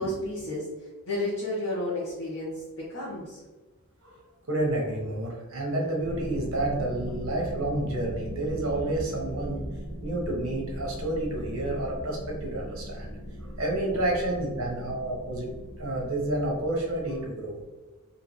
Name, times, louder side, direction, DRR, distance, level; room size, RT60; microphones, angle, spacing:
voice 1, 0.0-3.4 13.9-14.0, left 1 dB, 65° left, -9 dB, 1.1 m, -32 dB
voice 2, 4.5-9.6 10.0-13.2 13.6-15.5 15.8-17.6, right 1 dB, 65° right, -1 dB, 1.0 m, -30 dB
sound 1, 6.0-17.3, right 1 dB, 5° right, 1.4 m, -38 dB
3.7 x 2.7 x 3.1 m, 1.2 s
head